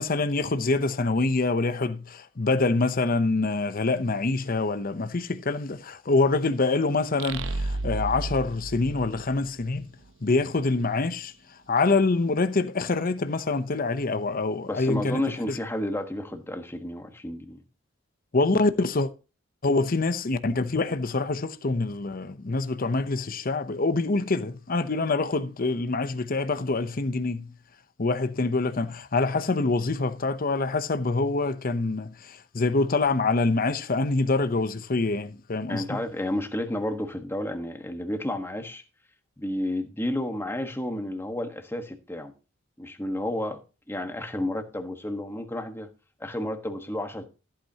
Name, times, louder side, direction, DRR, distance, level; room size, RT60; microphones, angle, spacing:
voice 1, 0.0-9.9 10.2-11.3 11.7-15.6 18.3-19.1 19.6-27.5 28.0-35.8, left 3 dB, 50° left, 0.8 m, -25 dB
sound 1, 7.2-9.8, right 2 dB, 75° right, 0.8 m, -32 dB
voice 2, 14.7-17.6 35.7-38.8 39.4-42.3 42.8-43.6 43.9-45.9 46.2-47.3, left 1 dB, 10° left, 1.3 m, -31 dB
14.5 x 8.7 x 2.9 m
head